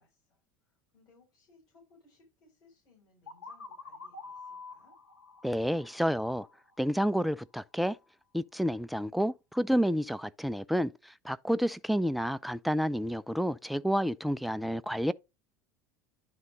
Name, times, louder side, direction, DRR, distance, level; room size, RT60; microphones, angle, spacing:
voice 1, 0.0-5.0, left 3 dB, 45° left, 5.1 m, -65 dB
sound 1, 3.3-7.0, left 4 dB, 80° left, 1.3 m, -48 dB
voice 2, 5.4-6.5 6.8-8.0 8.3-15.1, equal, ahead, 0.4 m, -30 dB
11.0 x 3.7 x 4.0 m
figure-of-eight pair, 75°, 10 cm